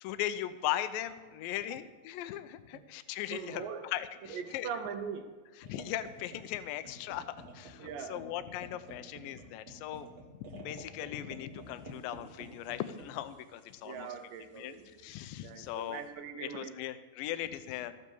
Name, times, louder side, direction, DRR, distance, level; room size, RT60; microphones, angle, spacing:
voice 1, 0.0-4.7 5.6-10.1 10.5-14.1 14.6-16.0 16.4-17.9, left 12 dB, 80° left, 12 dB, 2.3 m, -38 dB
voice 2, 3.3-3.9 4.3-5.3 7.8-8.2 13.8-15.0 15.4-16.7, right 6 dB, 75° right, 7 dB, 2.3 m, -41 dB
sound 1, 5.6-16.1, right 2 dB, 55° right, 1.0 m, -52 dB
13.5 x 8.3 x 7.0 m, 1.3 s
omnidirectional pair, 4.3 m